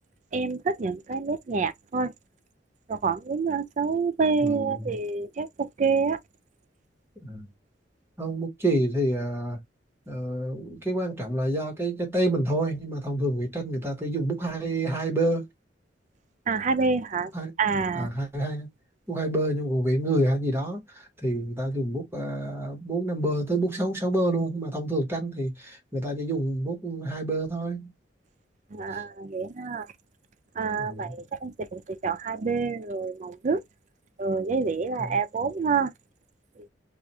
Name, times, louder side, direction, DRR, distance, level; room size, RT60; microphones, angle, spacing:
voice 1, 0.3-2.1 2.9-6.2 16.5-17.3 17.6-18.1 28.7-29.9 30.6-33.6 34.2-35.9 36.6-36.7, right 4 dB, 40° right, 0.4 m, -27 dB
voice 2, 4.4-4.9 7.2-7.5 8.2-9.6 10.1-15.5 17.3-17.5 17.9-18.7 19.1-27.9 30.8-31.1 35.0-35.2, right 1 dB, 15° right, 1.2 m, -28 dB
2.4 x 2.4 x 4.1 m
head